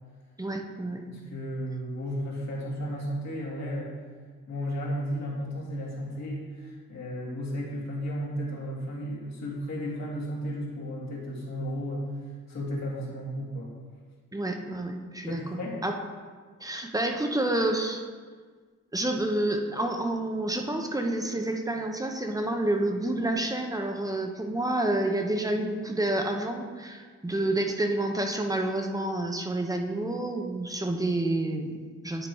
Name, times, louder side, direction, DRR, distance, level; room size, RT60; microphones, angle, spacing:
voice 1, 0.4-1.1 14.3-15.9 16.6-18.0 18.9-32.3, right 1 dB, 10° right, 3 dB, 0.8 m, -29 dB
voice 2, 1.1-3.9 4.5-12.1 12.5-13.7 15.3-15.8, equal, 60° left, -5 dB, 2.4 m, -34 dB
10.0 x 3.8 x 4.6 m, 1.5 s
cardioid pair, 90°, 30 cm